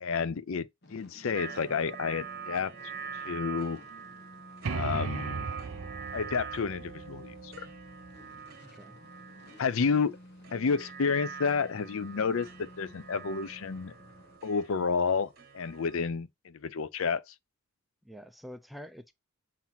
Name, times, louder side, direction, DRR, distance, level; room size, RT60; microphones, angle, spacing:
voice 1, 0.0-2.7 3.2-3.8 4.7-5.5 6.1-7.7 9.6-10.2 10.5-13.9 14.4-17.2, left 5 dB, 65° left, 0.5 m, -30 dB
sound 1, 0.8-14.4, left 1 dB, 50° left, 1.0 m, -53 dB
sound 2, 1.3-16.0, right 6 dB, 45° right, 1.3 m, -44 dB
sound 3, 4.6-8.3, right 4 dB, 75° right, 0.6 m, -37 dB
voice 2, 8.6-9.0 18.0-19.1, equal, ahead, 0.4 m, -46 dB
7.4 x 2.8 x 5.7 m
head